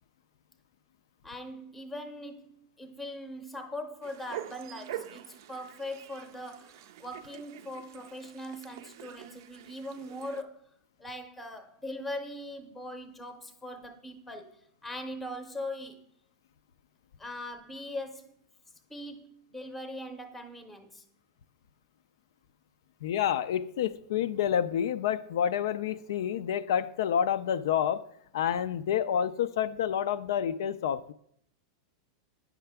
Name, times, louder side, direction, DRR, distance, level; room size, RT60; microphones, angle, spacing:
voice 1, 1.2-10.7 11.0-16.0 17.2-18.4 18.9-21.1, left 1 dB, 5° left, 7 dB, 0.7 m, -41 dB
sound 1, 4.0-10.4, right 12 dB, 65° right, 0.4 m, -45 dB
voice 2, 23.0-28.0 28.3-31.1, left 9 dB, 75° left, 13 dB, 0.3 m, -28 dB
8.6 x 5.7 x 3.4 m, 0.71 s
supercardioid pair, 135°, 2 cm